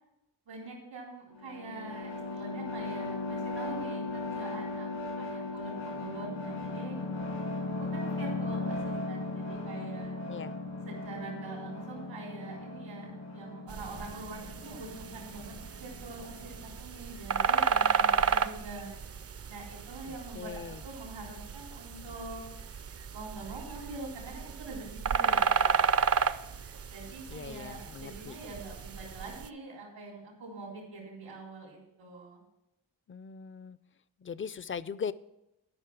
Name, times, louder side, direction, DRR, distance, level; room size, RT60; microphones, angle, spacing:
voice 1, 0.5-7.0 7.9-10.1 10.8-18.9 19.5-22.4 23.1-26.1 26.8-32.4, right 3 dB, 90° right, -2 dB, 3.9 m, -44 dB
sound 1, 1.3-16.8, left 2 dB, 80° left, 1.8 m, -37 dB
sound 2, 13.7-29.5, right 6 dB, 30° right, 0.5 m, -32 dB
voice 2, 20.0-20.8 27.3-28.4 33.1-33.8 34.2-35.1, left 6 dB, 30° left, 18 dB, 0.4 m, -40 dB
13.0 x 5.5 x 6.1 m, 0.91 s
supercardioid pair, 40°, 48 cm